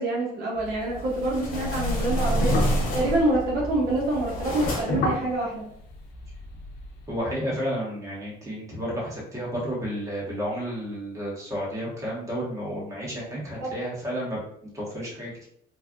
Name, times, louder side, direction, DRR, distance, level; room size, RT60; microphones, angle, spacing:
voice 1, 0.0-2.6 2.9-5.6 13.6-13.7, right 1 dB, 70° right, -3 dB, 0.8 m, -26 dB
sound 1, 0.6-7.1, left 1 dB, 80° left, 0.7 m, -33 dB
sound 2, 0.9-3.4 3.9-5.1, equal, 60° left, 1.2 m, -27 dB
voice 2, 7.1-14.4 14.7-15.5, equal, 20° right, -6 dB, 1.4 m, -31 dB
3.1 x 2.5 x 2.5 m, 0.69 s
cardioid pair, 110°, 17 cm